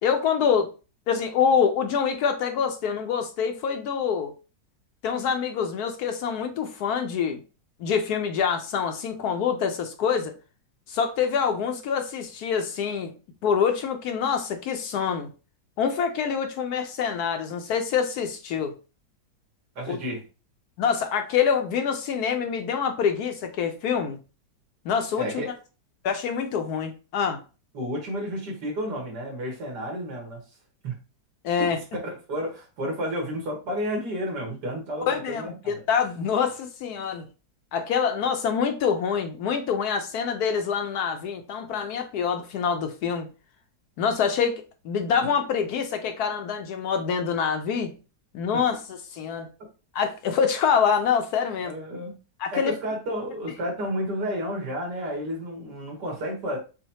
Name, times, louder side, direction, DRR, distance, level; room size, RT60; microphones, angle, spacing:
voice 1, 0.0-0.7 1.1-4.3 5.0-7.4 7.8-10.3 10.9-13.1 13.4-15.3 15.8-18.7 19.9-20.0 20.8-24.2 24.8-25.3 26.0-27.4 31.4-31.8 35.1-37.2 37.7-43.3 44.0-47.9 48.3-49.5 49.9-51.7 52.4-52.7, left 7 dB, 70° left, 1.0 m, -25 dB
voice 2, 19.8-20.2 25.2-25.5 27.7-30.4 30.8-30.9 31.9-35.5 51.6-52.2 52.5-56.6, equal, 70° right, 2.1 m, -31 dB
6.2 x 2.1 x 2.8 m
omnidirectional pair, 1.9 m